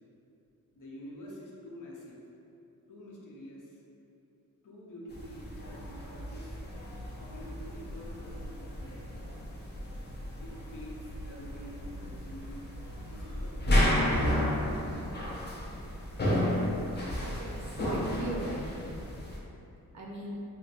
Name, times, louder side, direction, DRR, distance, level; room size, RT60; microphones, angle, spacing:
voice 1, 0.7-2.2 2.9-3.8 4.6-6.6 7.2-9.3 10.4-12.6 13.0-14.9, equal, 60° left, -5 dB, 0.7 m, -47 dB
sound 1, 5.1-19.4, left 1 dB, 30° left, 0.5 m, -33 dB
voice 2, 17.1-19.0 19.9-20.4, right 1 dB, 50° right, -3 dB, 0.6 m, -39 dB
4.0 x 2.1 x 2.5 m, 2.8 s
cardioid pair, 80°, 36 cm